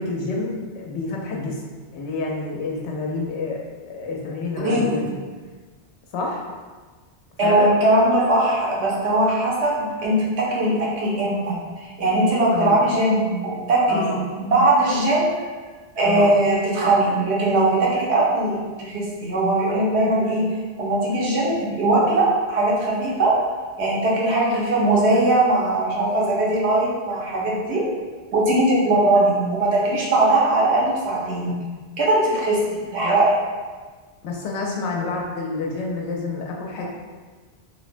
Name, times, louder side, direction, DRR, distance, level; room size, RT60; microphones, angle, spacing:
voice 1, 0.0-1.5 1.9-3.6 3.9-5.0 6.1-6.4 7.4-7.7 12.5-12.9 13.9-14.2 16.0-16.3 33.0-33.2 34.2-36.9, left 3 dB, 85° left, -1 dB, 0.9 m, -28 dB
voice 2, 4.6-5.0 7.4-11.6 12.0-15.4 16.0-20.5 20.8-23.3 23.8-27.8 28.3-31.6 32.0-33.3, right 2 dB, 80° right, -5 dB, 1.0 m, -20 dB
3.1 x 2.0 x 2.5 m, 1.4 s
omnidirectional pair, 1.1 m